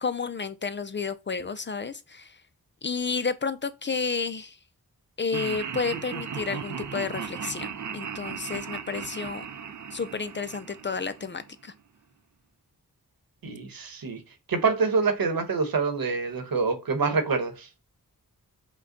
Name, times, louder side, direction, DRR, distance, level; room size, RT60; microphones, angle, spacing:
voice 1, 0.0-2.4 2.8-4.6 5.2-9.5 9.9-11.7, left 5 dB, 35° left, 0.4 m, -31 dB
Laughter, 5.3-11.5, right 7 dB, 55° right, 0.6 m, -36 dB
voice 2, 13.4-14.2 14.5-17.7, right 4 dB, 70° right, 1.0 m, -26 dB
5.2 x 2.2 x 3.7 m
cardioid pair, 55°, 36 cm